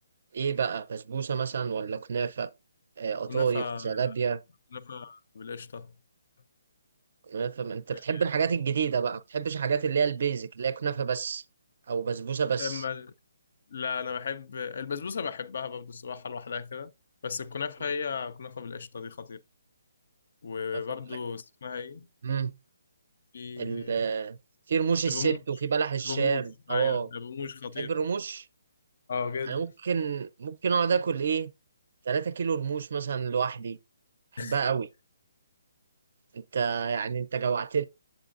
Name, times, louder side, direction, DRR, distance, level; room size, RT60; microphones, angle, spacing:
voice 1, 0.3-2.5 3.0-4.4 7.3-11.4 11.9-12.8 20.7-20.8 22.2-22.5 23.6-24.4 24.7-27.1 27.8-28.4 29.5-31.5 32.1-33.8 34.3-34.9 36.3-37.8, right 6 dB, 40° right, 0.4 m, -29 dB
voice 2, 3.3-4.1 4.7-5.9 7.9-8.0 12.6-13.1 13.7-16.9 17.2-19.4 20.4-22.1 23.3-24.0 25.1-25.4 26.0-27.9 29.1-29.6 34.4-34.6, left 6 dB, 45° left, 0.4 m, -35 dB
8.0 x 7.5 x 2.5 m
hypercardioid pair, 180°, 0 cm